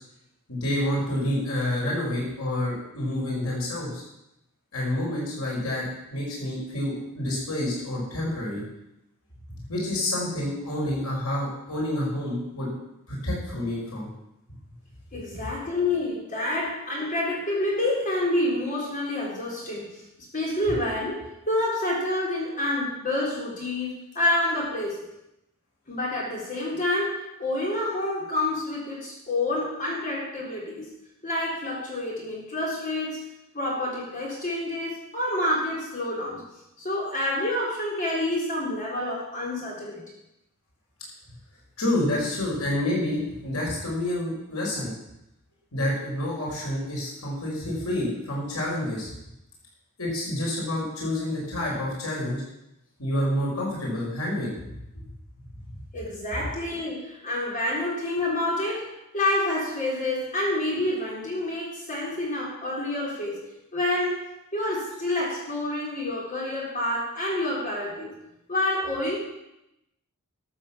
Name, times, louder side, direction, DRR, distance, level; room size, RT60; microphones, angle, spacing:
voice 1, 0.5-4.0 4.7-5.9 6.1-8.6 9.7-12.7 13.1-14.1 41.8-44.9 45.7-49.1 50.0-52.4 53.0-54.5, left 1 dB, 85° left, -4 dB, 5.3 m, -28 dB
voice 2, 15.1-20.0 20.3-25.0 25.9-30.9 31.2-36.4 36.8-40.0 55.9-63.4 63.7-68.1 68.5-69.2, left 1 dB, 40° left, -4 dB, 3.9 m, -28 dB
13.0 x 8.2 x 7.4 m, 0.86 s
head